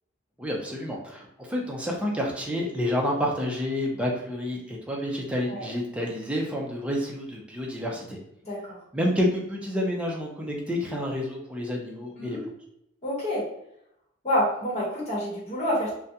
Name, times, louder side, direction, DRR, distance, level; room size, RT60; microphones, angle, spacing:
voice 1, 0.4-8.2 8.9-12.4, left 1 dB, 5° right, -2 dB, 0.4 m, -29 dB
voice 2, 13.0-13.5 14.2-16.0, equal, 35° left, -7 dB, 1.1 m, -27 dB
2.4 x 2.2 x 2.7 m, 0.77 s
head